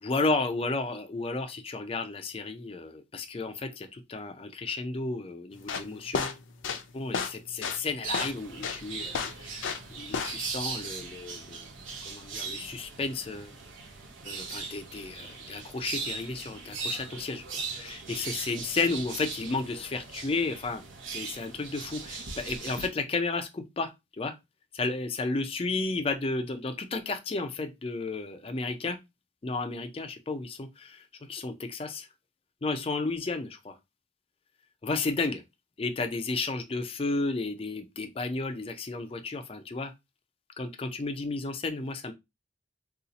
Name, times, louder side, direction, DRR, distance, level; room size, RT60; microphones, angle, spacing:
voice 1, 0.0-6.4 6.9-9.7 9.9-11.7 12.1-13.5 14.2-20.8 21.1-24.3 24.7-29.0 29.4-32.1 32.6-33.8 34.8-35.4 35.8-39.9 40.6-42.1, left 3 dB, 30° left, 0.4 m, -33 dB
sound 1, 5.6-9.9 10.1-10.5, left 5 dB, 85° left, 0.5 m, -32 dB
sound 2, 8.0-22.9, right 4 dB, 85° right, 0.8 m, -39 dB
2.6 x 2.4 x 3.9 m
head